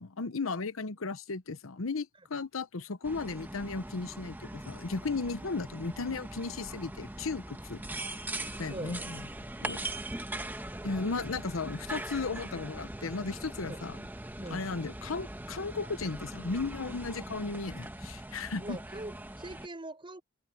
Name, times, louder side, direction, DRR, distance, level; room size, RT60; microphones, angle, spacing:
voice 1, 0.0-7.8 8.6-9.2 9.6-9.8 10.8-14.0 14.5-18.8, left 4 dB, 85° left, 0.9 m, -35 dB
sound 1, 3.0-19.7, right 1 dB, 10° right, 1.3 m, -41 dB
voice 2, 8.6-9.0 13.6-13.8 14.4-14.7 18.6-20.2, right 1 dB, 25° right, 4.1 m, -42 dB
head